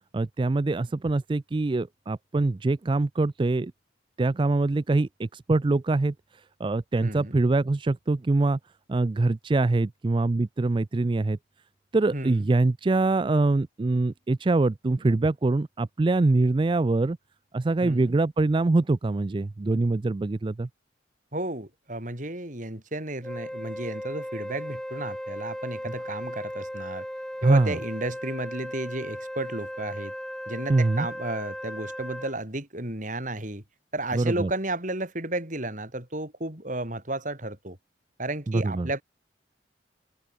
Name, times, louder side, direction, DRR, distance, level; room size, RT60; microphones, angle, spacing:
voice 1, 0.1-3.7 4.2-6.1 6.6-8.6 8.9-11.4 11.9-17.2 17.5-20.7 27.4-27.8 30.7-31.1 34.1-34.5 38.5-38.9, right 2 dB, 25° right, 0.4 m, -24 dB
voice 2, 7.0-7.4 12.1-12.5 17.8-18.1 21.3-27.0 27.4-30.1 30.5-33.6 33.9-37.8 38.2-39.0, right 2 dB, 45° right, 4.8 m, -33 dB
Wind instrument woodwind instrument, 23.2-32.4, equal, 5° left, 3.5 m, -37 dB
open air
head